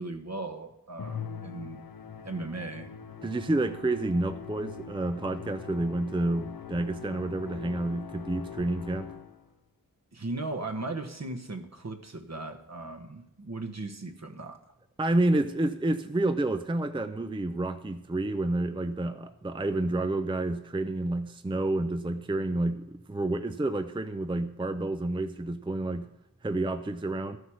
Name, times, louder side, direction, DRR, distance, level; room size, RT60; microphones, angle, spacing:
voice 1, 0.0-1.8 2.2-2.9 10.1-14.6, right 2 dB, 50° right, 7 dB, 1.3 m, -37 dB
Musical instrument, 1.0-9.5, left 7 dB, 80° left, 0.7 m, -42 dB
voice 2, 3.2-9.1 15.0-26.1 26.4-27.4, right 2 dB, 15° right, 9 dB, 0.5 m, -29 dB
13.0 x 8.0 x 6.3 m, 0.86 s
wide cardioid pair, 80°, 34 cm